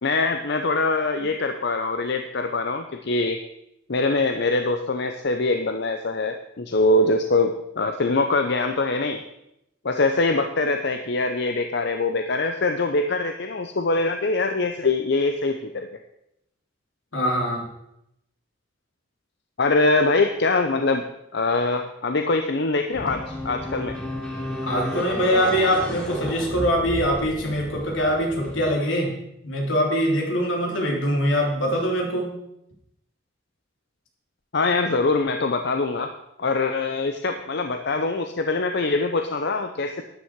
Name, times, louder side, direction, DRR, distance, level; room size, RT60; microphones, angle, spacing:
voice 1, 0.0-3.4 3.9-9.2 9.8-15.9 19.6-21.0 21.3-24.0 34.5-36.1 36.4-40.0, left 3 dB, 60° left, 6 dB, 0.8 m, -23 dB
voice 2, 17.1-17.7 24.6-29.1 29.4-32.3, equal, 80° left, 0 dB, 3.4 m, -23 dB
sound 1, 22.9-28.6, left 1 dB, 5° left, 2.8 m, -32 dB
12.5 x 10.0 x 4.7 m, 0.82 s
head